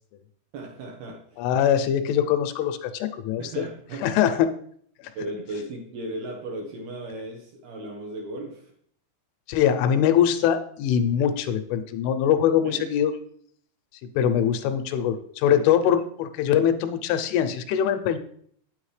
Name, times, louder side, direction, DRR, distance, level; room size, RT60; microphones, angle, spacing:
voice 1, 0.5-1.4 3.4-4.1 5.2-8.7 12.6-12.9 15.5-15.6, right 2 dB, 70° right, 1 dB, 2.6 m, -36 dB
voice 2, 1.4-3.7 4.0-4.5 9.5-13.1 14.2-18.2, left 9 dB, 85° left, 9 dB, 3.1 m, -22 dB
8.9 x 8.8 x 3.2 m, 0.62 s
omnidirectional pair, 5.5 m